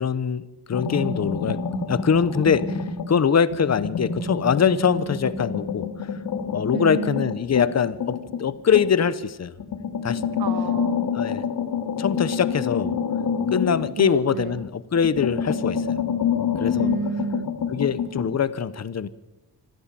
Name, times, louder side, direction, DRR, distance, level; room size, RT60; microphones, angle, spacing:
voice 1, 0.0-1.6 1.9-2.7 3.1-5.9 6.5-9.5 10.0-10.2 11.1-11.4 12.0-12.9 13.5-15.8 16.6-16.9 17.7-19.1, left 7 dB, 45° left, 16 dB, 0.9 m, -23 dB
sound 1, 0.7-3.2 3.5-9.1 9.6-14.6 15.0-18.3, left 6 dB, 80° left, 2.4 m, -27 dB
voice 2, 6.7-7.3 10.4-11.1 14.0-14.6 16.8-17.5, right 5 dB, 75° right, 12 dB, 1.0 m, -30 dB
25.5 x 14.5 x 7.6 m, 1.0 s
wide cardioid pair, 140°, 37 cm